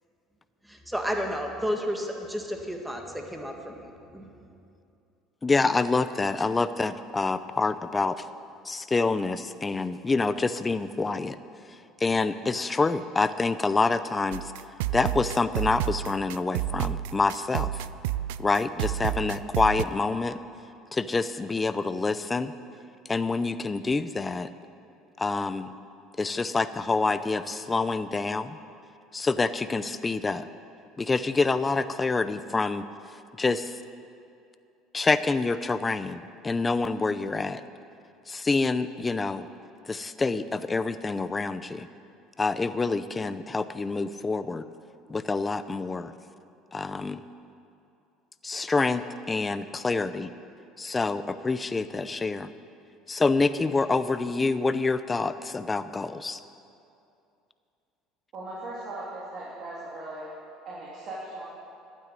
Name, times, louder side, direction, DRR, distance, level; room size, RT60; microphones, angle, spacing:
voice 1, 0.6-4.3, equal, 5° right, 2 dB, 1.8 m, -32 dB
voice 2, 5.4-8.2 8.7-11.4 12.0-14.5 14.9-17.7 18.4-20.4 20.9-22.5 23.1-24.5 25.2-25.7 26.2-28.6 29.1-30.5 31.0-32.8 33.4-33.7 34.9-37.6 38.3-39.5 39.9-41.9 42.4-44.6 45.1-46.1 46.7-47.2 48.4-50.3 50.8-52.5 53.1-56.4, left 3 dB, 20° left, 13 dB, 0.6 m, -27 dB
sound 1, 14.3-19.8, right 13 dB, 90° right, 0.3 m, -31 dB
voice 3, 58.3-60.3 60.7-61.4, right 2 dB, 50° right, -7 dB, 3.3 m, -38 dB
12.0 x 9.2 x 9.3 m, 2.6 s
supercardioid pair, 100°, 0 cm